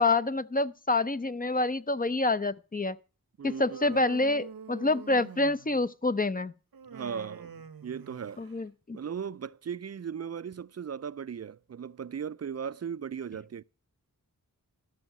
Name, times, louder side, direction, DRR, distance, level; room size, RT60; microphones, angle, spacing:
voice 1, 0.0-3.0 3.4-6.5 8.4-9.0, left 2 dB, 25° left, 0.6 m, -27 dB
voice 2, 3.4-4.0 6.9-7.5 7.8-8.4 8.9-13.6, right 7 dB, 45° right, 0.4 m, -37 dB
Human voice, 3.6-5.8 6.7-8.6, right 6 dB, 80° right, 1.0 m, -45 dB
13.0 x 6.4 x 5.9 m
wide cardioid pair, 75°, 35 cm